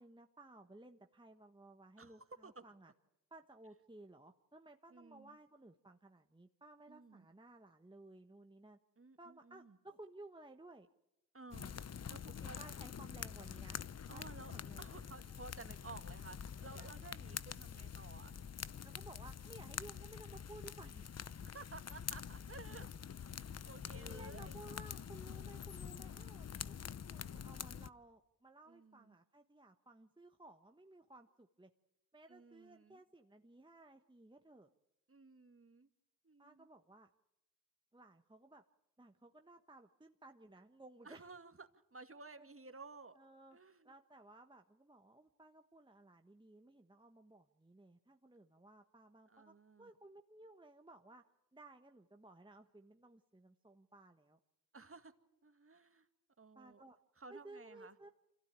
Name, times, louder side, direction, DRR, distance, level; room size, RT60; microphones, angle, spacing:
voice 1, 0.0-2.9 3.3-8.8 9.2-10.9 12.3-13.8 14.1-15.1 16.7-17.0 18.8-21.1 23.9-31.7 32.1-34.7 36.4-37.1 37.9-38.6 39.0-41.3 42.4-42.5 43.2-43.6 43.8-51.2 51.5-54.4 56.5-57.0 57.3-58.1, right 2 dB, 10° right, 5 dB, 1.3 m, -58 dB
voice 2, 2.0-2.6 4.9-5.4 6.9-7.3 9.0-9.8 11.3-11.8 12.1-12.8 14.1-14.5 14.8-18.4 21.4-22.9 23.4-24.6 24.9-25.0 28.7-29.2 32.3-33.0 35.1-35.9 36.2-36.7 41.0-43.2 43.5-43.9 49.3-49.9 54.7-55.1 55.4-56.1 56.4-56.9 57.2-58.0, right 3 dB, 30° right, 9 dB, 2.1 m, -55 dB
sound 1, 11.5-27.9, left 7 dB, 40° left, 0.8 m, -46 dB
26.0 x 16.0 x 8.9 m, 0.92 s
supercardioid pair, 40°, 41 cm